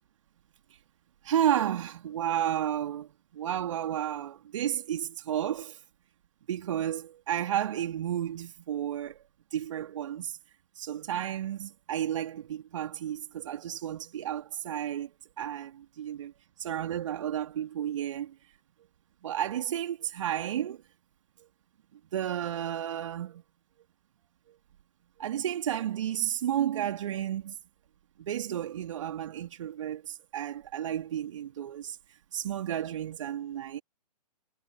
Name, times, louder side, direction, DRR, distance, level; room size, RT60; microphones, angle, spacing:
voice 1, 1.2-5.8 6.5-9.2 9.5-10.4 10.8-16.3 16.6-18.3 19.2-20.8 22.1-23.4 24.5-24.6 25.2-27.5 28.2-32.0 32.3-33.8, right 10 dB, 50° right, 3.0 m, -32 dB
figure-of-eight pair, 120°, 21 cm